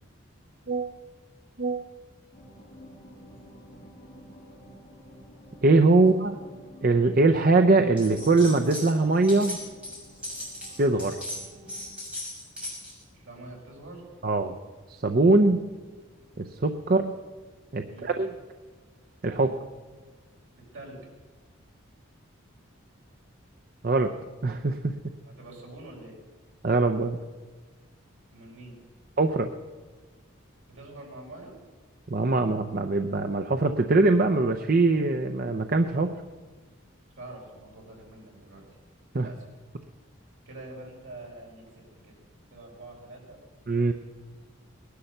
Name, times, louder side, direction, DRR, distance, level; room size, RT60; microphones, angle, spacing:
sound 1, 2.3-11.9, equal, 25° left, 4.3 m, -50 dB
voice 1, 5.6-6.3 6.8-9.6 10.8-11.2 14.2-14.6 15.0-15.6 16.4-17.0 17.7-18.3 19.2-19.5 23.8-24.1 24.4-24.8 26.6-27.2 29.2-29.5 32.1-36.1 39.1-39.3 43.7-43.9, right 3 dB, 45° right, 6 dB, 0.6 m, -22 dB
sound 2, 8.0-8.9 9.1-13.0, left 1 dB, 5° right, 6.4 m, -38 dB
voice 2, 13.1-14.0 16.8-17.1 17.9-18.1 19.3-19.5 20.7-21.0 25.2-26.2 28.3-28.8 30.7-31.6 37.2-38.6 39.1-39.5 40.5-42.1 42.5-43.4, right 2 dB, 65° right, -2 dB, 5.3 m, -45 dB
19.0 x 11.5 x 6.7 m, 1.4 s
head